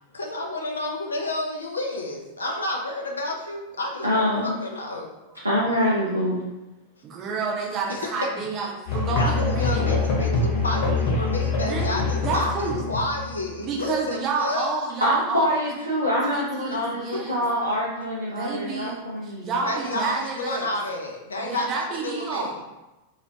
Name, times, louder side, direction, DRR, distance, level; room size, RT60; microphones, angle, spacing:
voice 1, 0.1-5.1 7.9-8.0 9.1-14.7 16.7-16.8 17.1-17.2 19.6-21.7 22.0-22.5, left 2 dB, 75° left, 1 dB, 0.3 m, -30 dB
voice 2, 4.0-4.6 5.4-6.4 15.0-19.5, equal, 85° right, -7 dB, 0.4 m, -25 dB
voice 3, 7.0-9.9 11.5-12.8 13.6-15.5 16.3-17.4 18.3-20.7 21.4-22.6, right 4 dB, 30° right, -2 dB, 0.6 m, -30 dB
Musical instrument, 8.9-13.7, left 3 dB, 45° left, 0.7 m, -25 dB
2.3 x 2.1 x 2.7 m, 1.0 s
figure-of-eight pair, 90°, 0 cm